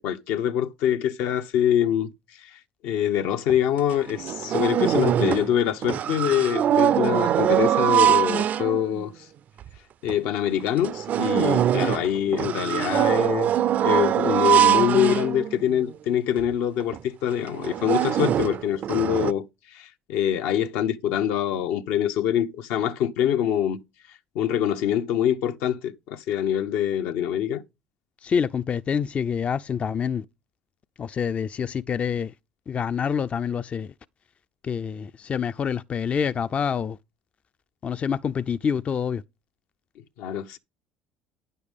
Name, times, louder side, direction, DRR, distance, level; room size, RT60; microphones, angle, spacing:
voice 1, 0.0-2.1 2.4-9.1 10.0-13.5 13.8-19.5 19.7-23.8 24.3-27.6 40.2-40.6, left 10 dB, 75° left, 0.7 m, -25 dB
sound 1, 3.5-3.6 3.9-5.6 5.8-9.0 9.6-9.7 10.1-10.2 10.7-15.8 16.4-16.5 16.8-17.0 17.5-19.3, right 10 dB, 50° right, 0.4 m, -23 dB
voice 2, 28.2-30.3 31.0-32.3 32.7-33.9 34.6-37.0 37.8-39.2, left 7 dB, 35° left, 0.4 m, -27 dB
9.5 x 6.7 x 3.5 m
supercardioid pair, 80°, 4 cm